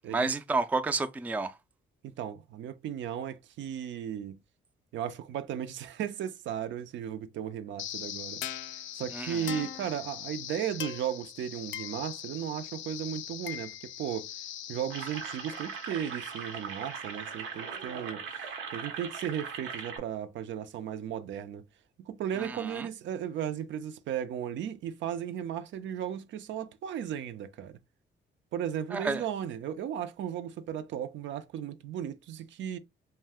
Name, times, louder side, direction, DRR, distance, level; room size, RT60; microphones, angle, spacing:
voice 1, 0.1-1.6 9.1-9.6 22.4-22.9 28.9-29.2, right 3 dB, 10° right, 0.3 m, -31 dB
voice 2, 2.0-4.4 4.9-8.4 8.9-14.3 14.7-18.2 18.7-21.6 22.0-27.8 28.5-32.8, right 9 dB, 70° right, 0.4 m, -35 dB
sound 1, 7.8-16.8, left 11 dB, 75° left, 0.4 m, -41 dB
sound 2, 14.9-20.0, right 6 dB, 90° right, 0.9 m, -39 dB
2.5 x 2.2 x 3.4 m
cardioid pair, 90°, 20 cm